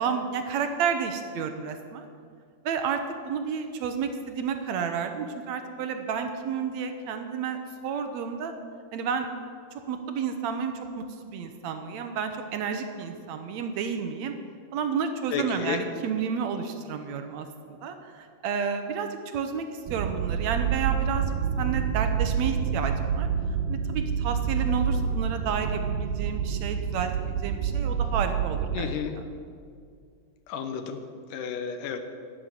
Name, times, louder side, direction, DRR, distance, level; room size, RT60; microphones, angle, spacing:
voice 1, 0.0-2.1 2.7-3.0 3.3-8.5 8.9-9.3 9.7-14.3 14.7-23.3 23.7-28.9, right 6 dB, 70° right, 6 dB, 2.0 m, -31 dB
voice 2, 15.3-15.8 28.7-29.1 30.5-31.0 31.3-32.0, left 7 dB, 90° left, 7 dB, 2.6 m, -31 dB
sound 1, 19.9-28.9, right 7 dB, 90° right, 2.2 m, -28 dB
12.0 x 7.8 x 9.7 m, 2.2 s
omnidirectional pair, 3.6 m